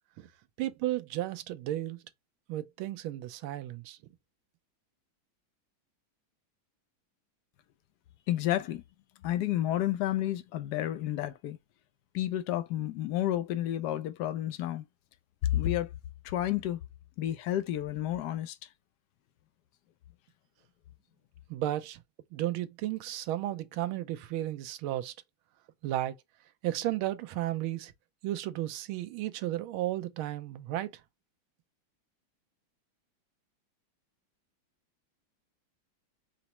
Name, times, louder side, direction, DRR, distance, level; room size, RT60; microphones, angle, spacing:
voice 1, 0.6-2.0 2.5-4.0 21.5-22.0 22.3-25.1 25.8-26.2 26.6-27.9 28.2-31.0, right 14 dB, 90° right, 1.4 m, -33 dB
voice 2, 8.3-8.8 9.2-11.6 12.1-14.8 15.4-15.9 16.2-16.8 17.2-18.7, left 13 dB, 75° left, 0.9 m, -30 dB
5.0 x 2.0 x 4.1 m
omnidirectional pair, 2.2 m